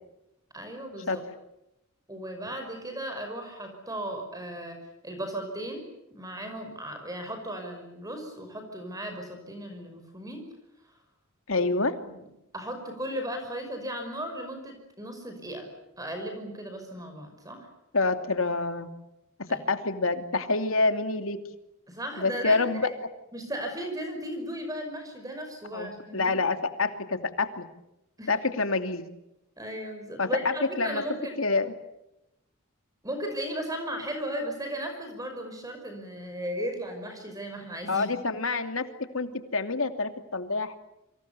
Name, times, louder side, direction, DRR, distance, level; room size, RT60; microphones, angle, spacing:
voice 1, 0.5-1.2 2.1-4.8 5.0-5.8 6.1-10.5 11.5-11.7 12.0-12.2 12.5-15.7 16.0-17.7 19.5-19.6 21.9-22.9 23.3-26.4 28.2-28.3 29.6-31.4 33.0-38.1, equal, 15° right, 5 dB, 5.5 m, -36 dB
voice 2, 11.5-11.9 17.9-18.9 19.5-21.4 22.2-22.9 25.7-27.6 28.3-29.0 30.2-31.0 31.4-31.7 37.9-38.9 39.1-40.8, left 3 dB, 75° left, 8 dB, 2.8 m, -27 dB
29.5 x 26.0 x 7.0 m, 0.89 s
head